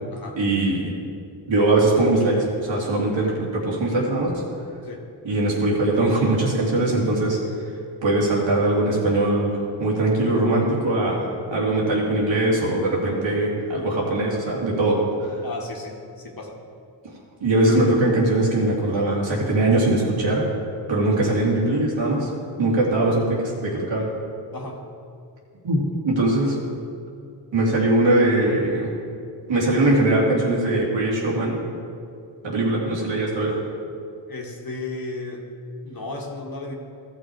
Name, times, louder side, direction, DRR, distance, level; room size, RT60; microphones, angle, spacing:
voice 1, 0.4-0.9 1.5-4.4 5.2-7.4 8.0-15.3 17.4-20.5 20.9-22.3 22.6-24.1 25.6-26.6 27.5-28.9 29.5-31.6 32.4-33.5, right 2 dB, 70° right, -4 dB, 2.7 m, -21 dB
voice 2, 15.4-16.6 24.5-24.8 34.3-35.5 35.8-36.7, left 2 dB, 45° left, 0 dB, 1.9 m, -34 dB
14.0 x 6.0 x 4.7 m, 2.4 s
supercardioid pair, 50°, 47 cm